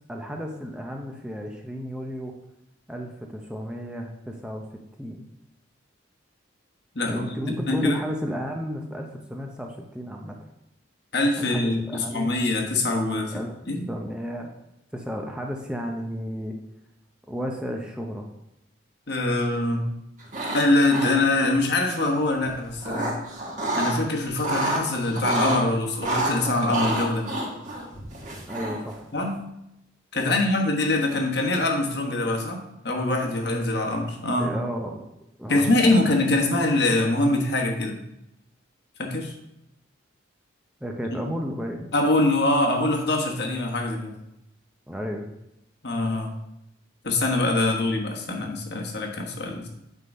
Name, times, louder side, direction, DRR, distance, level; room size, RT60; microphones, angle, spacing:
voice 1, 0.1-2.3 2.9-4.6 5.0-5.2 7.0-10.4 11.4-12.4 13.1-13.5 13.9-14.5 14.9-16.6 17.3-18.3 28.5-29.1 30.3-30.4 34.4-35.0 35.4-36.0 40.8-41.9 44.9-45.3, equal, 5° right, 1 dB, 0.6 m, -33 dB
voice 2, 6.9-8.0 11.1-13.3 13.7-13.8 19.1-19.8 20.5-23.1 23.8-27.3 29.1-29.4 30.1-34.5 35.5-38.0 39.0-39.3 41.9-44.2 45.8-46.3 47.0-49.7, left 2 dB, 60° left, 1 dB, 1.3 m, -24 dB
sound 1, 20.2-20.6 20.9-21.5 22.4-24.0 24.3-25.6 26.0-28.9, right 1 dB, 40° right, 1.7 m, -28 dB
8.3 x 3.9 x 5.4 m, 0.87 s
head